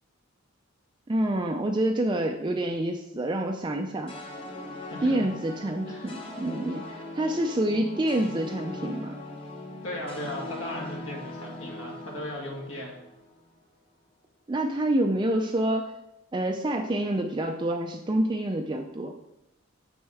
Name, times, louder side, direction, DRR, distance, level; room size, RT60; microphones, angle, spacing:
voice 1, 1.1-4.1 5.0-9.2 14.5-15.9 16.3-19.1, right 1 dB, 20° right, 4 dB, 0.3 m, -27 dB
sound 1, 4.1-13.4, left 1 dB, 25° left, 1.0 m, -40 dB
voice 2, 4.9-5.3 5.9-6.1 9.8-13.0, left 1 dB, 70° left, -1 dB, 2.0 m, -37 dB
7.1 x 6.3 x 3.4 m, 0.90 s
head